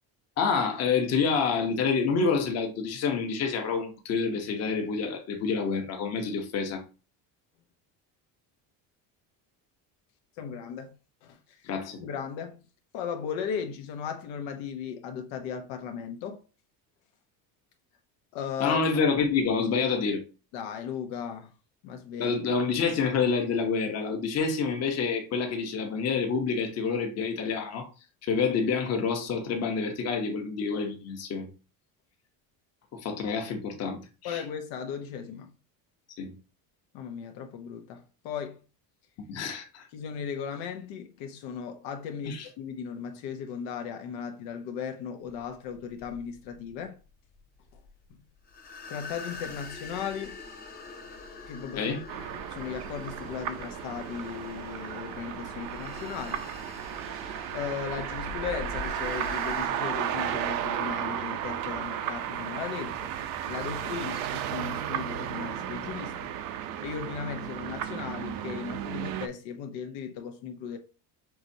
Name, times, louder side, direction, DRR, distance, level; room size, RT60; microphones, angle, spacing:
voice 1, 0.4-6.8 11.6-12.0 18.6-20.2 22.2-27.9 28.2-31.5 32.9-34.4 36.2-36.3 39.3-39.8 42.3-42.4 51.7-52.0, left 5 dB, 40° left, 1.0 m, -28 dB
voice 2, 10.4-10.9 11.2-11.6 12.0-12.6 12.9-16.4 18.3-18.9 20.5-21.5 21.8-22.4 34.2-35.5 36.9-38.6 39.9-47.0 48.1-48.2 48.9-50.4 51.5-51.9 52.5-56.5 57.5-63.1 63.5-66.3 66.8-70.8, left 7 dB, 85° left, 1.0 m, -36 dB
sound 1, 45.3-59.7, left 4 dB, 25° left, 0.7 m, -44 dB
sound 2, 52.1-69.3, right 10 dB, 55° right, 0.6 m, -34 dB
5.9 x 3.1 x 2.7 m
cardioid pair, 155°, 40 cm